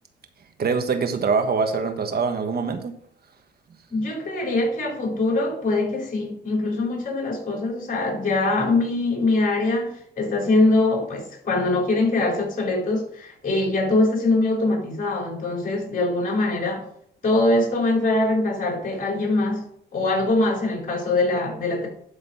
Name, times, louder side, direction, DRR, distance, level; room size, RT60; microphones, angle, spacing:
voice 1, 0.6-2.9, right 5 dB, 50° right, 7 dB, 1.5 m, -24 dB
voice 2, 3.9-16.9 17.2-21.9, left 2 dB, 45° left, -1 dB, 4.1 m, -23 dB
11.5 x 4.0 x 5.7 m, 0.65 s
cardioid pair, 90°, 20 cm